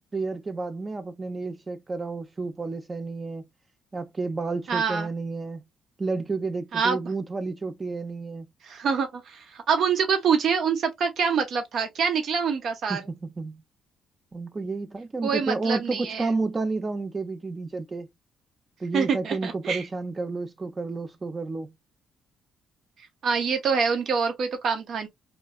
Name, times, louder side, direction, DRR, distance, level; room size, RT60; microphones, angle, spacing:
voice 1, 0.0-3.4 3.9-5.6 6.0-8.5 12.9-13.6 14.3-18.1 18.8-21.7, right 3 dB, 30° right, 0.5 m, -31 dB
voice 2, 4.7-5.1 6.7-7.0 8.6-13.0 15.2-16.3 18.9-19.8 23.2-25.1, right 6 dB, 65° right, 0.9 m, -25 dB
3.1 x 2.3 x 2.2 m
supercardioid pair, 70°, 0 cm